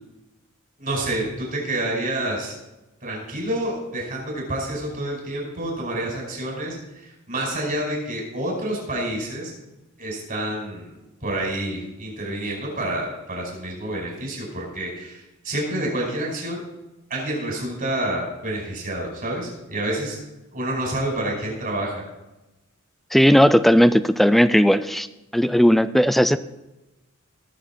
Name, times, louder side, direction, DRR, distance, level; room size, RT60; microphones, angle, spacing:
voice 1, 0.8-2.6 3.0-9.5 10.0-10.9 11.2-16.6 17.1-20.2 20.5-22.0, right 1 dB, 40° right, -2 dB, 5.2 m, -28 dB
voice 2, 23.1-25.1 25.3-26.4, equal, ahead, 14 dB, 0.4 m, -16 dB
19.0 x 7.2 x 4.5 m, 1.0 s
head